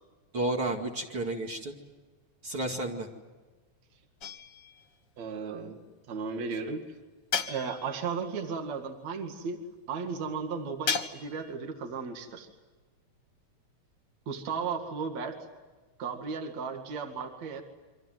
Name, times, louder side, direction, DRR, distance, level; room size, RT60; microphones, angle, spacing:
voice 1, 0.3-1.7 2.4-3.1, right 2 dB, 45° right, 0 dB, 3.1 m, -31 dB
sound 1, 4.2-4.9 7.3-8.1 10.9-11.5, left 6 dB, 40° left, 1.9 m, -34 dB
voice 2, 5.2-5.8 6.1-6.8 7.5-12.5 14.3-15.4 16.0-17.6, right 5 dB, 65° right, 4 dB, 3.4 m, -35 dB
29.5 x 25.5 x 7.8 m, 1.3 s
omnidirectional pair, 3.4 m